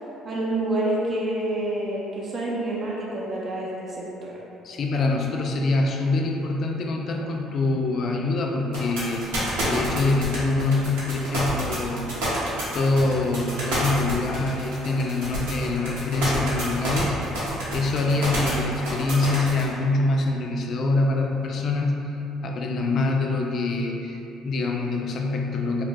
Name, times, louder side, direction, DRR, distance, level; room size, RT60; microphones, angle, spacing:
voice 1, 0.2-4.3, right 1 dB, 45° right, -5 dB, 0.5 m, -28 dB
voice 2, 4.6-12.1 12.7-17.2 17.7-22.0 22.4-25.8, left 2 dB, 55° left, 1 dB, 0.3 m, -25 dB
sound 1, 8.7-19.6, right 1 dB, 85° right, 0.8 m, -28 dB
2.2 x 2.1 x 3.8 m, 2.8 s
supercardioid pair, 70°, 0 cm